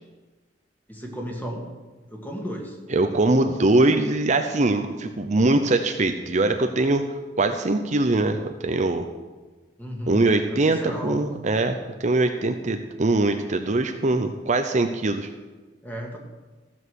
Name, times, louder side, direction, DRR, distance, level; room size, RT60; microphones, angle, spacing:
voice 1, 0.9-1.7 2.1-2.8 9.8-10.2 10.7-11.2 15.8-16.2, equal, 10° left, 0 dB, 2.1 m, -33 dB
voice 2, 2.9-7.1 7.4-9.1 10.1-15.3, right 2 dB, 40° right, 6 dB, 0.7 m, -22 dB
15.0 x 7.3 x 6.4 m, 1.3 s
head